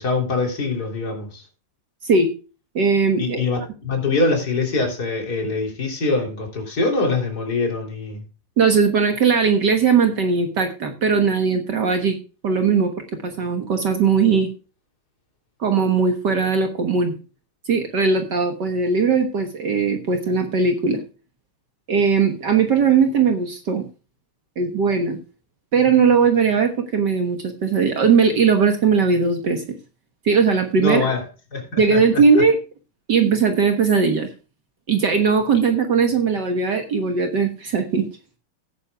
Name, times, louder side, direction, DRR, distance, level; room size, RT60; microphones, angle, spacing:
voice 1, 0.0-1.4 3.2-3.6 3.8-8.2 30.8-31.3 31.5-32.2, left 3 dB, 45° left, 1 dB, 3.8 m, -23 dB
voice 2, 2.8-3.4 8.6-12.2 12.4-12.9 13.2-14.5 15.6-17.1 17.7-21.0 21.9-23.9 24.6-25.2 25.7-29.8 30.3-31.1 31.8-32.6 33.1-34.3 34.9-38.1, right 5 dB, 55° right, 5 dB, 1.8 m, -19 dB
16.5 x 9.5 x 2.3 m, 0.33 s
omnidirectional pair, 2.4 m